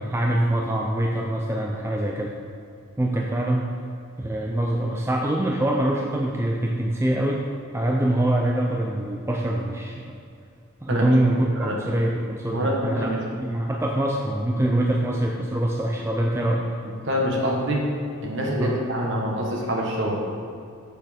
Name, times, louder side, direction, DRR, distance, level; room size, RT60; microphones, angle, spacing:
voice 1, 0.0-2.3 3.0-3.7 4.2-7.4 7.7-10.0 10.8-16.6 18.6-18.8, right 1 dB, 10° right, 0 dB, 0.4 m, -24 dB
voice 2, 12.5-13.2 16.8-17.8 18.2-20.2, equal, 55° right, -1 dB, 1.3 m, -25 dB
6.6 x 6.2 x 5.0 m, 2.4 s
head